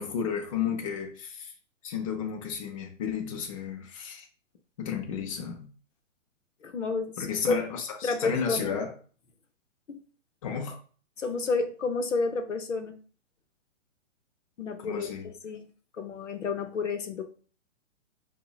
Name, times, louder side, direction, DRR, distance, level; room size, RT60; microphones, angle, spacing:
voice 1, 0.0-1.5 1.8-4.3 4.8-5.7 7.2-8.9 10.4-10.8 14.8-15.3, left 7 dB, 30° left, 2 dB, 0.5 m, -32 dB
voice 2, 6.6-7.5 8.0-8.7 9.9-10.0 11.2-13.0 14.6-15.7 16.0-17.3, left 4 dB, 80° left, 6 dB, 0.6 m, -30 dB
4.6 x 2.1 x 2.2 m, 0.40 s
figure-of-eight pair, 120°, 37 cm